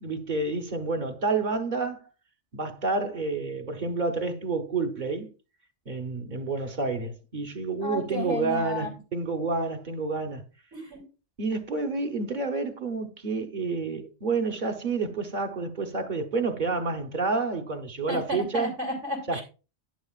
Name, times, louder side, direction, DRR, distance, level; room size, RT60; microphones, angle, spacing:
voice 1, 0.0-2.0 2.5-5.3 5.9-10.4 11.4-18.7 19.3-19.4, right 3 dB, 45° right, 1.1 m, -29 dB
voice 2, 7.8-8.9 10.7-11.0 18.1-19.4, left 1 dB, 80° right, 3.3 m, -32 dB
10.5 x 9.4 x 2.4 m
omnidirectional pair, 1.2 m